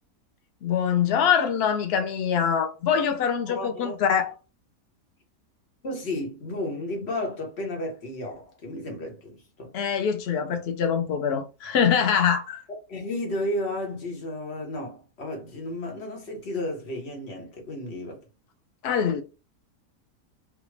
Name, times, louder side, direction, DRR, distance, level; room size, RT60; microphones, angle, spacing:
voice 1, 0.6-4.3 9.7-12.6 18.8-19.2, left 7 dB, 85° left, 0.5 m, -24 dB
voice 2, 3.5-4.0 5.8-9.7 12.9-18.2, left 1 dB, 45° left, 1.3 m, -33 dB
3.5 x 2.3 x 3.2 m
omnidirectional pair, 1.8 m